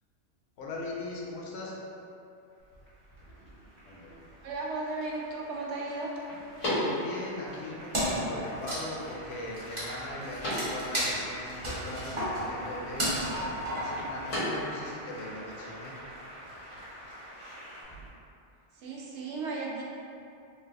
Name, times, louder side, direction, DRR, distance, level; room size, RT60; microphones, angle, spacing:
voice 1, 0.6-1.8 6.6-13.1 13.7-16.0, left 2 dB, 65° left, -3 dB, 0.8 m, -40 dB
Applause, 2.5-17.8, equal, 45° right, 1.1 m, -47 dB
sound 1, 2.6-18.1, left 1 dB, 90° left, 1.6 m, -40 dB
voice 2, 4.4-6.1 18.7-19.8, right 3 dB, 75° right, -3 dB, 0.9 m, -35 dB
Wood, 7.9-14.6, equal, 30° right, 0.7 m, -33 dB
3.3 x 2.1 x 3.4 m, 2.6 s
omnidirectional pair, 1.2 m